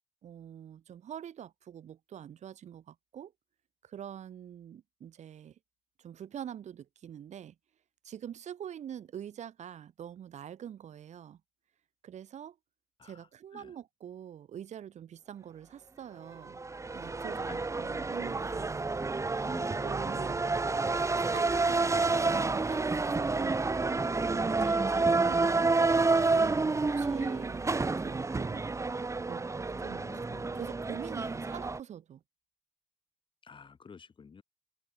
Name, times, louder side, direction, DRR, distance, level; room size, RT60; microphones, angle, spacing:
voice 1, 0.2-3.3 3.8-5.6 6.0-7.5 8.0-11.4 12.0-12.6 13.0-16.6 16.9-18.8 19.5-20.4 21.2-25.6 26.0-28.7 29.3-29.5 29.8-30.2 30.5-32.2, right 9 dB, 75° right, 3.3 m, -45 dB
sound 1, 16.5-31.8, right 3 dB, 25° right, 2.8 m, -29 dB
voice 2, 17.5-17.9 19.4-19.9 29.7-30.6 33.4-34.4, left 6 dB, 45° left, 3.5 m, -51 dB
cardioid pair, 110°, 12 cm